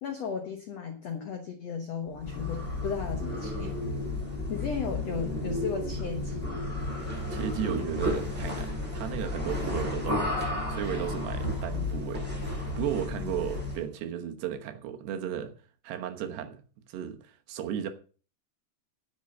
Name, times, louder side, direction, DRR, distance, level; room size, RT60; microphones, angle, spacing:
voice 1, 0.0-3.7 4.5-6.7 13.2-13.3, left 6 dB, 85° left, 1.4 m, -35 dB
sound 1, 2.1-13.9, left 1 dB, ahead, 7.1 m, -32 dB
voice 2, 7.3-12.3 12.8-15.5 15.8-16.6 16.9-17.9, right 10 dB, 75° right, 3.2 m, -35 dB
10.0 x 8.3 x 6.6 m
omnidirectional pair, 4.9 m